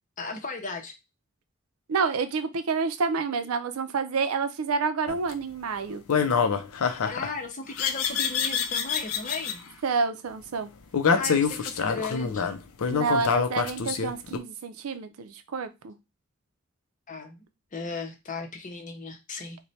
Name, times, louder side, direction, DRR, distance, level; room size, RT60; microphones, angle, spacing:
voice 1, 0.2-1.0 7.0-9.6 11.1-12.6 17.1-19.6, left 3 dB, 40° left, 0.7 m, -36 dB
voice 2, 1.9-6.0 9.8-10.7 12.9-16.0, right 4 dB, 90° right, 0.5 m, -28 dB
sound 1, 5.1-5.3 6.1-7.3 7.8-9.5 10.9-14.4, left 6 dB, 90° left, 0.5 m, -26 dB
3.1 x 2.2 x 4.1 m
head